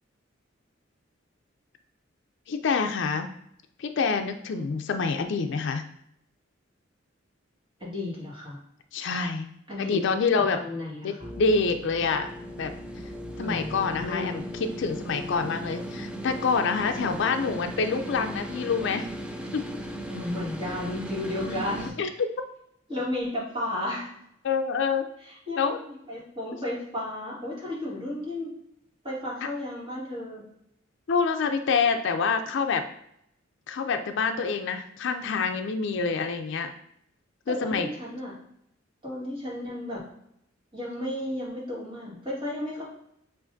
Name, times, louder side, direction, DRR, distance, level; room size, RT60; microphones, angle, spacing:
voice 1, 2.5-3.3 3.8-5.9 8.9-9.5 9.8-10.6 11.0-12.3 12.6-12.7 13.4-19.1 19.5-19.7 21.5-22.1 24.4-25.1 25.6-25.8 31.1-32.8 33.7-36.7 37.5-37.9, left 5 dB, 65° left, 7 dB, 0.4 m, -27 dB
voice 2, 7.8-8.6 9.7-10.0 10.4-11.3 13.4-14.4 17.0-17.1 20.1-21.9 22.9-24.1 25.2-28.5 29.0-30.4 37.5-38.3 39.0-40.0 40.7-42.8, left 1 dB, 25° right, -6 dB, 1.7 m, -33 dB
sound 1, 11.2-21.9, equal, 5° right, 0.3 m, -37 dB
7.2 x 2.5 x 2.6 m, 0.75 s
head